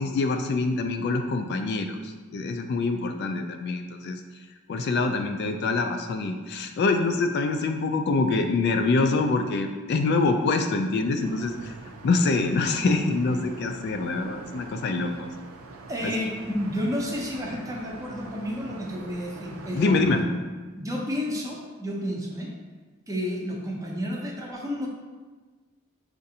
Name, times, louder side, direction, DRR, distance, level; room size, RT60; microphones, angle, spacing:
voice 1, 0.0-4.2 4.7-11.7 12.0-15.3 16.0-16.3 19.7-20.3, left 3 dB, 55° left, 6 dB, 0.3 m, -25 dB
sound 1, 11.2-20.2, right 3 dB, 80° right, 0.4 m, -44 dB
voice 2, 15.9-20.3 20.8-22.5 23.1-24.9, equal, 15° right, -2 dB, 0.6 m, -31 dB
6.4 x 2.5 x 2.8 m, 1.3 s
head